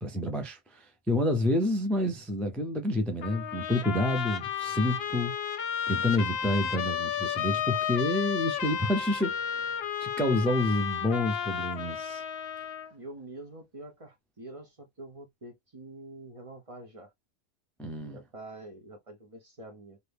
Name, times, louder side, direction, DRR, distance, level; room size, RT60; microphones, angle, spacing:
voice 1, 0.0-5.6 5.9-9.7 10.0-12.2 17.8-18.2, left 1 dB, ahead, 0.4 m, -29 dB
Trumpet, 3.2-12.9, left 8 dB, 60° left, 0.8 m, -32 dB
voice 2, 12.9-17.1 18.1-20.0, right 2 dB, 35° right, 0.7 m, -46 dB
2.8 x 2.6 x 3.4 m
omnidirectional pair, 1.3 m